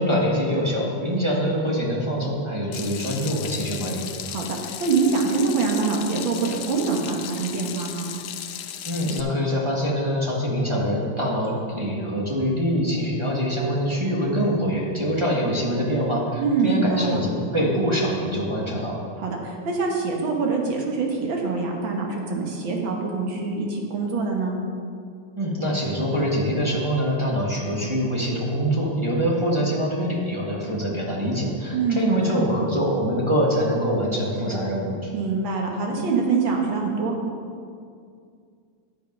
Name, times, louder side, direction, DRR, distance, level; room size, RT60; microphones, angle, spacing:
voice 1, 0.0-4.0 8.8-19.0 25.4-35.1, equal, 15° right, -4 dB, 1.3 m, -24 dB
Water tap faucet / Sink (filling or washing), 2.7-9.2, left 10 dB, 70° left, 1.1 m, -35 dB
voice 2, 4.3-8.2 16.4-17.2 19.2-24.5 31.7-32.3 35.1-37.1, right 4 dB, 80° right, 0 dB, 2.1 m, -24 dB
10.0 x 7.3 x 5.3 m, 2.3 s
omnidirectional pair, 2.1 m